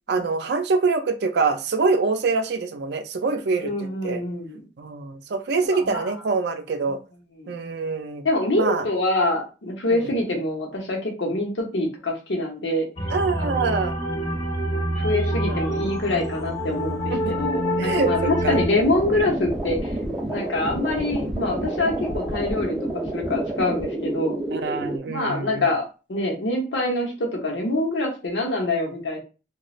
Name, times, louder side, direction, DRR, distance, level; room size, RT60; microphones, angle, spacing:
voice 1, 0.1-4.2 4.8-7.0 7.5-8.2 8.6-8.9 9.9-10.1 13.1-13.9 15.4-15.6 17.1-17.2 17.8-18.6 24.5-25.7, right 4 dB, 65° right, 7 dB, 0.4 m, -25 dB
voice 2, 3.6-4.6 5.7-6.1 7.4-7.5 8.2-12.8 13.4-13.7 14.9-19.9 20.3-24.4 25.1-29.2, left 2 dB, 85° left, 0 dB, 0.9 m, -25 dB
sound 1, 13.0-18.7, equal, 40° left, 0.9 m, -26 dB
sound 2, 18.7-25.0, right 1 dB, ahead, 0.7 m, -29 dB
3.0 x 2.3 x 2.4 m, 0.32 s
head